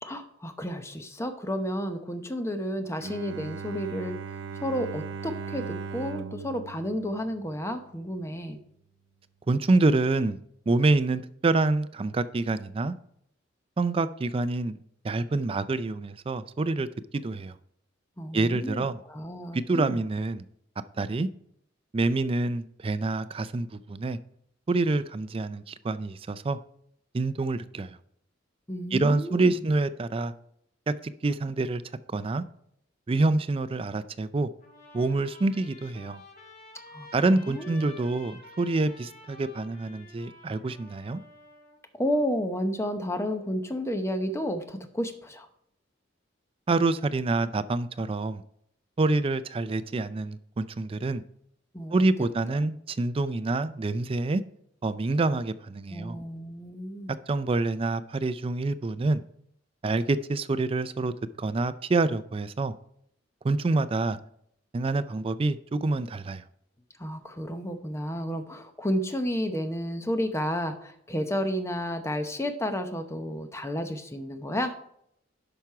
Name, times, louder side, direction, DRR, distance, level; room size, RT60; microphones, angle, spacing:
voice 1, 0.0-4.1 4.6-8.6 18.2-20.0 28.7-29.7 36.9-37.7 41.9-45.5 51.7-52.3 55.9-57.2 67.0-74.7, equal, 15° left, 0.8 m, -31 dB
Bowed string instrument, 3.0-8.0, right 5 dB, 70° right, 0.6 m, -38 dB
voice 2, 9.5-10.4 10.7-12.9 13.8-16.9 17.1-17.5 18.3-19.0 19.5-20.4 21.0-21.3 21.9-24.2 24.7-26.6 27.1-28.0 28.9-30.3 31.0-31.8 32.1-32.4 33.1-34.5 34.9-36.2 37.1-41.2 46.7-48.4 49.0-51.2 51.9-54.4 54.8-56.2 57.3-59.2 59.8-61.1 61.4-62.7 63.4-64.2 64.7-66.4, right 2 dB, 30° right, 0.4 m, -27 dB
Trumpet, 34.6-41.8, left 2 dB, 40° left, 2.1 m, -50 dB
10.5 x 5.9 x 4.7 m
head